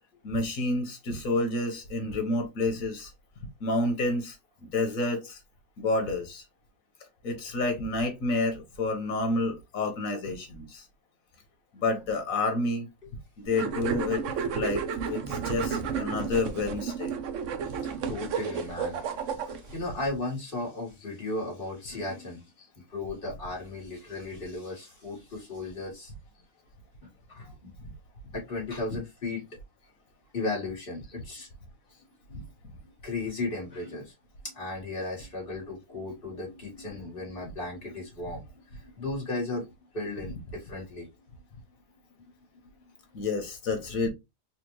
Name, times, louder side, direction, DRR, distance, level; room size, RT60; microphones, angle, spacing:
voice 1, 0.2-3.1 3.6-4.4 4.7-5.4 5.8-6.4 7.2-10.9 11.7-12.9 13.4-14.2 14.5-14.8 15.1-17.1 32.3-32.4 40.2-40.4 43.1-44.1, left 2 dB, 85° left, 1.5 m, -29 dB
sound 1, 13.5-19.8, right 6 dB, 70° right, 0.9 m, -32 dB
voice 2, 17.7-22.4 22.9-26.1 27.0-27.7 28.3-29.5 30.3-31.5 33.0-34.1 34.4-41.1, left 2 dB, 40° left, 1.8 m, -36 dB
4.3 x 2.5 x 3.0 m
omnidirectional pair, 1.4 m